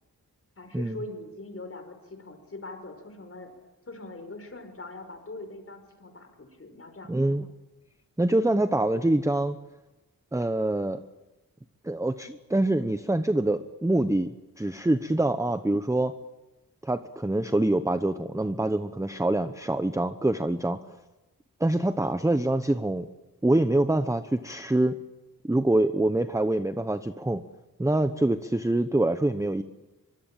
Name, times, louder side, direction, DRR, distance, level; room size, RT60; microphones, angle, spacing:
voice 1, 0.6-3.5 3.9-7.3, left 2 dB, 40° left, 6 dB, 5.2 m, -42 dB
voice 2, 7.1-7.5 8.2-9.6 10.3-11.0 11.8-16.2 16.8-20.8 21.6-23.1 23.4-25.0 25.4-27.4 27.8-29.6, right 1 dB, 10° right, 10 dB, 0.8 m, -25 dB
24.5 x 24.0 x 9.0 m, 1.1 s
wide cardioid pair, 110°, 36 cm